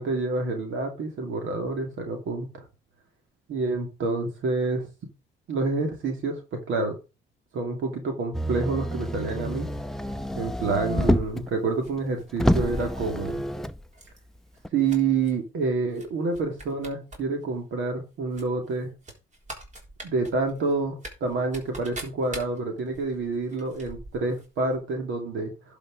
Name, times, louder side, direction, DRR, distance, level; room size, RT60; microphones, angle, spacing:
voice 1, 0.0-2.6 3.5-4.8 5.5-7.0 7.5-9.7 10.4-13.4 14.7-18.9 20.0-25.5, right 3 dB, 80° right, 4 dB, 2.5 m, -28 dB
Motor vehicle (road), 8.3-11.5 12.0-12.1 12.4-13.8 14.6-14.7, equal, ahead, 0.7 m, -27 dB
sound 1, 11.8-13.4 13.9-14.2 14.5-15.3 15.9-16.1 16.3-17.2 17.5-17.6 18.3-24.5 24.7-24.8, right 1 dB, 35° right, 3.7 m, -43 dB
11.5 x 5.3 x 4.9 m, 0.30 s
cardioid pair, 90°, 20 cm